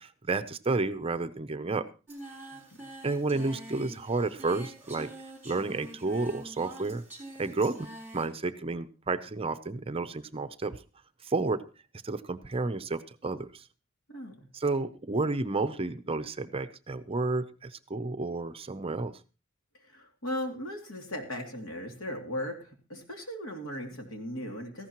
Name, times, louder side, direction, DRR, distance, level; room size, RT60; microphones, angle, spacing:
voice 1, 0.0-1.9 3.0-5.1 5.4-7.0 7.4-7.9 8.1-10.8 11.2-11.6 12.0-13.6 14.5-19.1, right 3 dB, 25° right, 11 dB, 0.6 m, -31 dB
Singing, 2.1-8.3, right 1 dB, 10° right, 3.9 m, -46 dB
voice 2, 14.1-14.5 19.7-24.9, left 1 dB, 80° left, 3 dB, 2.7 m, -38 dB
17.5 x 15.0 x 3.0 m, 0.32 s
head